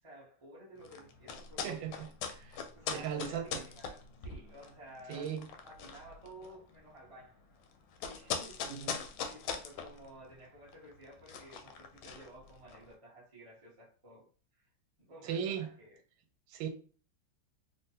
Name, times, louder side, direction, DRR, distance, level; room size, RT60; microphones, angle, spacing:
voice 1, 0.0-1.9 2.7-5.3 5.6-7.6 8.0-9.0 9.3-14.7 15.0-16.0, right 1 dB, 45° right, 0.4 m, -54 dB
sound 1, 0.8-12.9, left 6 dB, 85° left, 1.4 m, -42 dB
voice 2, 1.6-2.6 2.9-3.6 5.1-5.5 8.6-9.0 15.2-15.7 16.5-16.7, right 8 dB, 75° right, 1.3 m, -38 dB
3.5 x 2.2 x 2.7 m
omnidirectional pair, 2.2 m